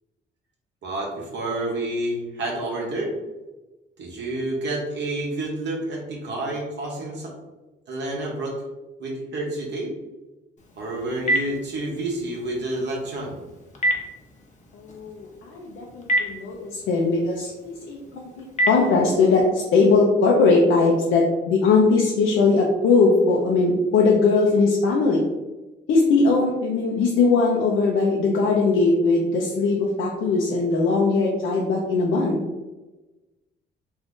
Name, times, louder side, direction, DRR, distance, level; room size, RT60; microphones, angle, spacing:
voice 1, 0.8-3.1 4.0-7.3 7.9-8.6 9.0-9.9 10.8-13.4, right 1 dB, 65° right, -2 dB, 0.8 m, -29 dB
Telephone, 10.6-19.4, right 1 dB, 40° left, 0.7 m, -31 dB
voice 2, 14.7-25.3 25.9-32.4, left 3 dB, 75° left, -2 dB, 0.6 m, -20 dB
2.6 x 2.4 x 3.6 m, 1.1 s
cardioid pair, 90°, 20 cm